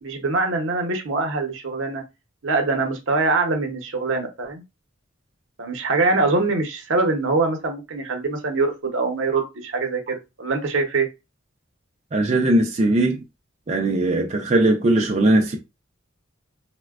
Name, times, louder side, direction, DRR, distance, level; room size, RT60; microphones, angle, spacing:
voice 1, 0.0-2.0 2.4-4.6 5.6-11.1, right 3 dB, 70° right, 0.8 m, -23 dB
voice 2, 12.1-13.2 13.7-15.6, right 1 dB, 35° right, 0.4 m, -19 dB
4.2 x 2.1 x 2.3 m
head